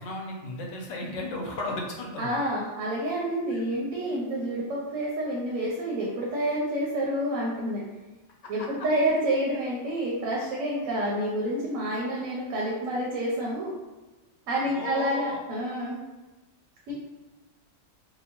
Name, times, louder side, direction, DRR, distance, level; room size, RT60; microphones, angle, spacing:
voice 1, 0.0-2.4 3.5-3.6 8.4-8.7 14.7-15.4, left 2 dB, 70° left, -1 dB, 0.9 m, -34 dB
voice 2, 2.2-7.8 8.5-13.7 14.5-16.0 16.9-17.0, right 1 dB, 85° right, -4 dB, 1.0 m, -28 dB
2.8 x 2.0 x 2.8 m, 1.2 s
omnidirectional pair, 1.3 m